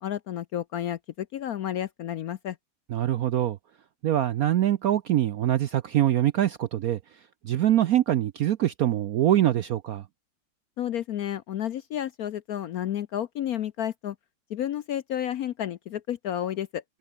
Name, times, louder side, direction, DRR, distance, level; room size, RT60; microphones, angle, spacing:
voice 1, 0.0-2.6 10.8-14.2 14.5-16.8, left 11 dB, 65° left, 0.9 m, -31 dB
voice 2, 2.9-3.6 4.0-7.0 7.4-10.0, right 12 dB, 70° right, 0.9 m, -24 dB
omnidirectional pair, 2.1 m